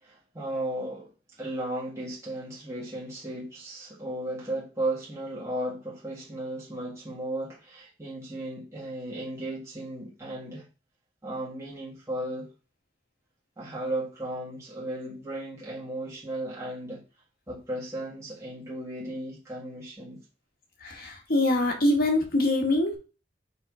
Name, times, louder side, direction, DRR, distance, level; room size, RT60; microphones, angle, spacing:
voice 1, 0.0-10.6 11.2-12.5 13.6-17.0 17.5-20.2, right 1 dB, 15° right, 1.6 m, -35 dB
voice 2, 20.8-23.0, left 1 dB, 55° left, 1.7 m, -24 dB
5.5 x 3.7 x 4.9 m
head